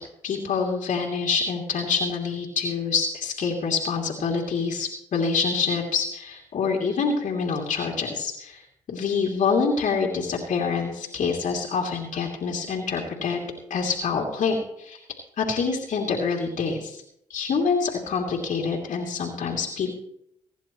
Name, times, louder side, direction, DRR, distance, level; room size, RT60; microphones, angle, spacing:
voice 1, 0.2-8.6 8.9-15.0 15.4-17.0 17.3-19.9, left 5 dB, 65° left, -1 dB, 2.8 m, -26 dB
24.5 x 10.5 x 3.1 m, 0.74 s
hypercardioid pair, 45°, 14 cm